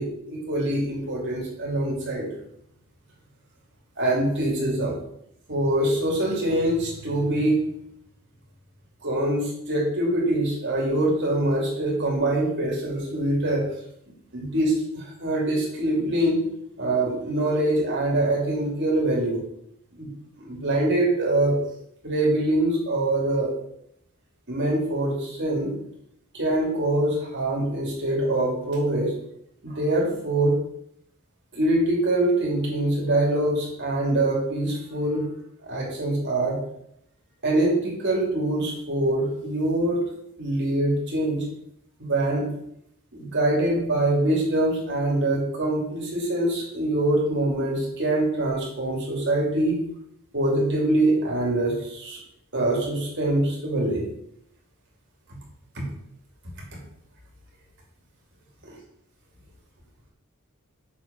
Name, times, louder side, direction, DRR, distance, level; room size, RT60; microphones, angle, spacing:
voice 1, 0.0-2.3 4.0-4.9 5.5-7.6 9.0-13.6 14.3-16.4 16.8-19.4 20.0-20.1 20.4-21.6 22.0-23.5 24.5-25.7 26.3-29.1 29.6-30.6 31.5-35.2 35.7-36.6 37.4-40.0 40.4-41.4 42.0-42.5 43.1-49.8 50.3-52.2 52.5-54.0 55.8-55.9, right 1 dB, 55° right, -2 dB, 2.7 m, -24 dB
6.9 x 5.1 x 5.2 m, 0.74 s
head